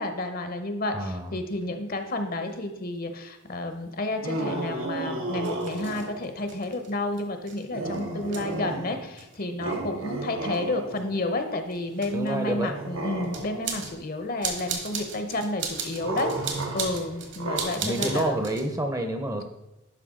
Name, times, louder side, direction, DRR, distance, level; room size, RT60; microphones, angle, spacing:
voice 1, 0.0-16.3 16.7-18.4, left 2 dB, 45° left, 7 dB, 0.8 m, -31 dB
voice 2, 0.9-1.3 12.1-12.8 17.8-19.4, right 1 dB, 15° right, 5 dB, 0.7 m, -28 dB
sound 1, 1.6-1.7 2.4-2.5 3.5-18.7, right 5 dB, 60° right, 1.5 m, -38 dB
sound 2, 4.2-6.3 7.7-9.2 9.6-11.3 12.7-13.8 16.0-18.2, right 2 dB, 85° right, 1.3 m, -33 dB
11.0 x 5.5 x 3.7 m, 0.99 s
head